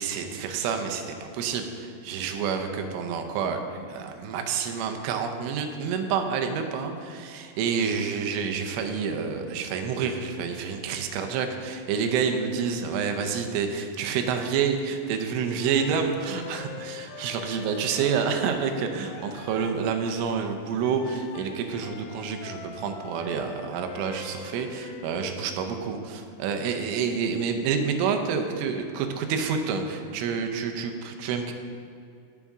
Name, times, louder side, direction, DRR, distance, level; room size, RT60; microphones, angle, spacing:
voice 1, 0.0-31.5, right 6 dB, 80° right, 5 dB, 3.3 m, -28 dB
sound 1, 15.6-19.9 20.8-25.4, left 6 dB, 90° left, 2.4 m, -43 dB
16.5 x 7.2 x 3.7 m, 2.4 s
omnidirectional pair, 5.7 m